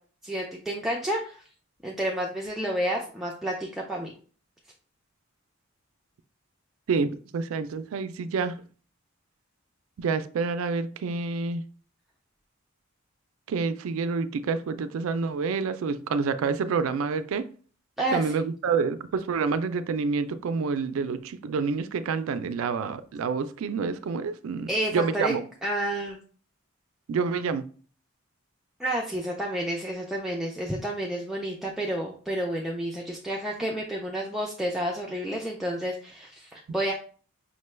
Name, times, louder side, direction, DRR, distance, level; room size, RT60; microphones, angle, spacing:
voice 1, 0.2-1.4 1.8-4.1 18.0-18.3 24.7-25.3 25.6-26.2 28.8-36.9, right 1 dB, ahead, 0.4 m, -30 dB
voice 2, 6.9-8.5 10.0-11.6 13.5-17.5 18.1-25.4 27.1-27.7, right 5 dB, 70° right, 0.3 m, -28 dB
5.7 x 2.2 x 3.1 m
head